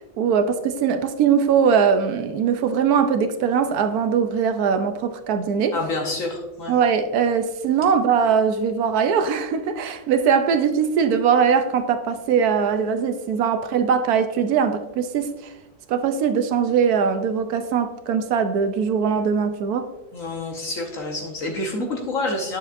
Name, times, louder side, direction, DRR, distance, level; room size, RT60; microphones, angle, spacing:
voice 1, 0.2-5.8 6.7-15.5 15.9-19.9 21.8-21.9, right 6 dB, 70° right, 1.0 m, -21 dB
voice 2, 5.7-6.8 20.1-22.6, left 2 dB, 55° left, 1.2 m, -28 dB
9.5 x 6.9 x 2.5 m
omnidirectional pair, 1.8 m